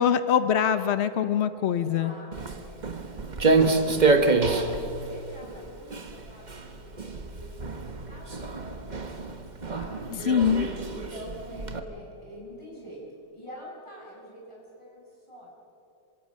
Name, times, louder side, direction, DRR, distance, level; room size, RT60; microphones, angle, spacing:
voice 1, 0.0-2.1 10.3-10.7, left 8 dB, 70° left, 11 dB, 0.6 m, -23 dB
voice 2, 1.7-2.8 4.5-9.4 9.7-10.0 10.9-15.5, equal, 15° left, -4 dB, 6.8 m, -46 dB
Walk footsteps, 2.3-11.8, right 3 dB, 25° right, 1.1 m, -27 dB
27.0 x 25.0 x 6.5 m, 3.0 s
omnidirectional pair, 2.1 m